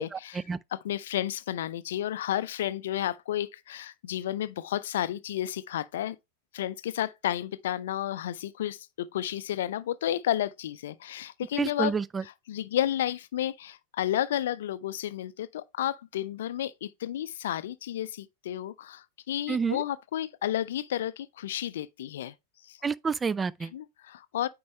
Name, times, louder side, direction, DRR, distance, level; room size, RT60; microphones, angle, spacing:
voice 1, 0.0-0.4 0.7-6.2 6.5-11.9 12.2-22.3 22.6-22.8 23.7-24.5, left 12 dB, 60° left, 0.5 m, -32 dB
voice 2, 11.6-12.2 19.5-19.8 22.8-23.7, right 5 dB, 15° right, 0.4 m, -28 dB
9.4 x 4.6 x 3.2 m
figure-of-eight pair, 90°, 0 cm